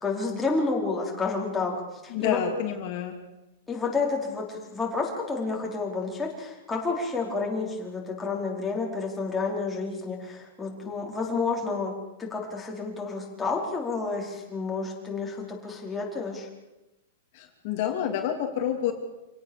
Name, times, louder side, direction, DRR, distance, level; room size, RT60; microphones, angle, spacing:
voice 1, 0.0-1.8 2.0-2.4 3.7-11.9 12.2-16.5, left 4 dB, 5° left, -2 dB, 4.6 m, -30 dB
voice 2, 2.1-3.2 17.3-18.9, left 9 dB, 45° left, 3 dB, 3.0 m, -28 dB
27.5 x 18.0 x 7.2 m, 1.0 s
supercardioid pair, 165°, 0 cm